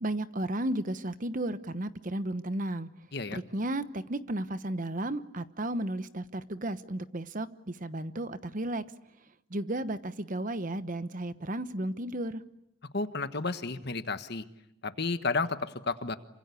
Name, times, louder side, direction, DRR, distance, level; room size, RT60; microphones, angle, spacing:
voice 1, 0.0-2.9 3.3-8.8 9.5-12.4, right 1 dB, 40° right, 12 dB, 1.1 m, -33 dB
voice 2, 12.9-14.4 14.8-16.2, left 3 dB, 55° left, 10 dB, 1.4 m, -32 dB
28.0 x 25.5 x 8.4 m, 0.82 s
head